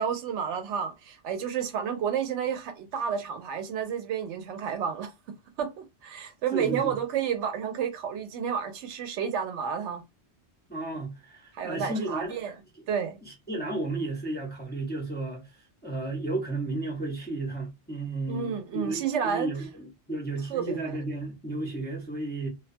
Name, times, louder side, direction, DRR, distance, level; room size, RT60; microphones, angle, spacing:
voice 1, 0.0-5.1 5.6-10.0 11.5-12.5 12.9-13.2 18.3-19.5 20.5-20.9, right 7 dB, 80° right, 0.9 m, -31 dB
voice 2, 6.5-7.0 10.7-12.4 13.2-15.5 15.8-22.5, right 2 dB, 10° left, 0.5 m, -33 dB
2.3 x 2.2 x 2.5 m
omnidirectional pair, 1.2 m